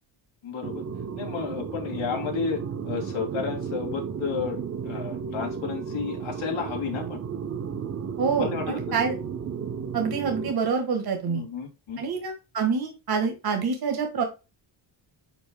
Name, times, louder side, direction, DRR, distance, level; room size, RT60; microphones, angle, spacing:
voice 1, 0.4-0.8 1.2-7.2 8.4-9.0 11.3-12.0, left 6 dB, 90° left, 2 dB, 2.6 m, -32 dB
sound 1, 0.6-10.5, right 6 dB, 35° right, 0.5 m, -33 dB
voice 2, 8.2-9.2 9.9-11.4 12.0-14.2, right 5 dB, 50° right, 4 dB, 1.6 m, -26 dB
9.9 x 4.8 x 2.2 m, 0.28 s
wide cardioid pair, 180°, 47 cm